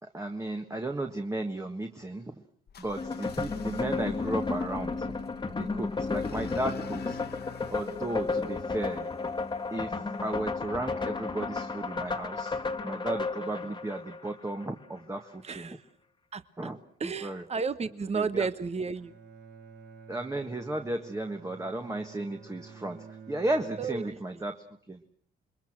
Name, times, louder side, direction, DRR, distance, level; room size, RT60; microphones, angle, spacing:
voice 1, 0.0-2.3 2.8-5.1 5.5-7.2 7.7-9.1 9.7-12.6 12.8-15.7 16.6-16.8 17.0-17.4 18.1-18.5 20.1-25.0, right 1 dB, 15° right, 4 dB, 1.6 m, -34 dB
sound 1, 2.7-9.6, left 8 dB, 55° left, 1.0 m, -47 dB
sound 2, 3.0-14.7, left 4 dB, 25° left, 1.6 m, -33 dB
voice 2, 15.4-15.8 16.3-16.7 17.0-19.1 23.8-24.4, right 5 dB, 30° right, 12 dB, 1.2 m, -33 dB
Bowed string instrument, 18.9-24.4, right 6 dB, 60° right, 4.2 m, -50 dB
27.5 x 22.0 x 6.1 m, 0.62 s
cardioid pair, 90°, 20 cm